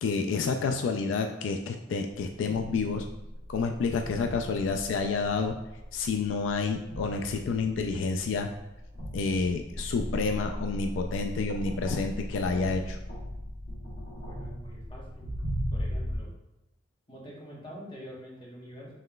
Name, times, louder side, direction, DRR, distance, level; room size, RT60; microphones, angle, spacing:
voice 1, 0.0-3.1 3.5-5.6 5.9-8.5 9.1-13.0, left 4 dB, 75° left, 5 dB, 0.3 m, -29 dB
sound 1, 2.5-16.2, equal, 50° left, 1.4 m, -37 dB
voice 2, 14.2-15.3 15.7-16.3 17.1-18.9, equal, 25° left, -4 dB, 1.0 m, -45 dB
5.7 x 3.1 x 2.2 m, 0.96 s
head